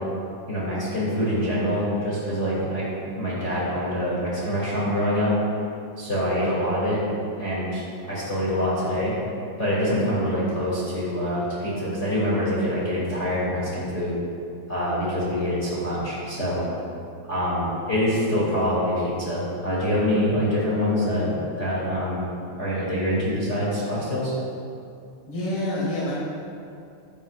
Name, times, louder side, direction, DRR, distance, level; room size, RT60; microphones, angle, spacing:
voice 1, 0.5-2.9 3.1-5.3 6.0-7.0 7.4-9.1 9.6-14.1 14.7-16.6 17.3-22.2 22.6-24.3, equal, 25° left, -8 dB, 1.9 m, -25 dB
voice 2, 25.3-26.1, left 1 dB, 45° left, -7 dB, 1.8 m, -27 dB
15.0 x 11.0 x 2.5 m, 2.5 s
omnidirectional pair, 5.1 m